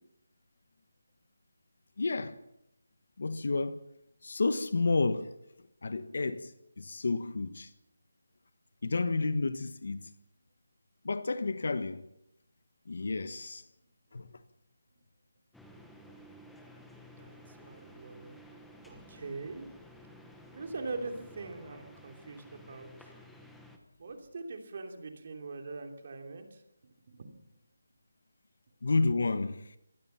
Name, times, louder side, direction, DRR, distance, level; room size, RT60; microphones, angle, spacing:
voice 1, 2.0-2.4 3.2-3.8 4.2-5.3 5.8-6.5 6.8-7.7 8.8-10.1 11.0-12.0 12.8-13.6 14.1-14.4 28.8-29.8, left 3 dB, 50° left, 1.4 m, -30 dB
sound 1, 15.5-23.8, equal, ahead, 1.0 m, -53 dB
voice 2, 16.9-18.4 18.8-19.7 20.5-22.9 24.0-26.6 27.1-27.3, right 3 dB, 30° right, 3.0 m, -42 dB
26.0 x 19.0 x 5.8 m
hypercardioid pair, 180°, 0 cm